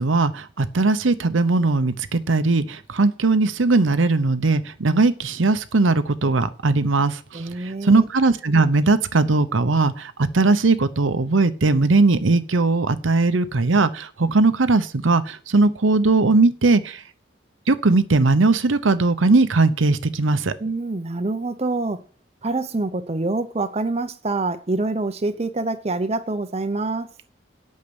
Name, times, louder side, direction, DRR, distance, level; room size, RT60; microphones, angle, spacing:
voice 1, 0.0-17.0 17.7-20.5, right 3 dB, 90° right, 0.8 m, -19 dB
voice 2, 7.3-8.1 20.6-22.0 22.4-27.1, right 2 dB, 35° right, 0.7 m, -26 dB
8.6 x 6.5 x 8.0 m
head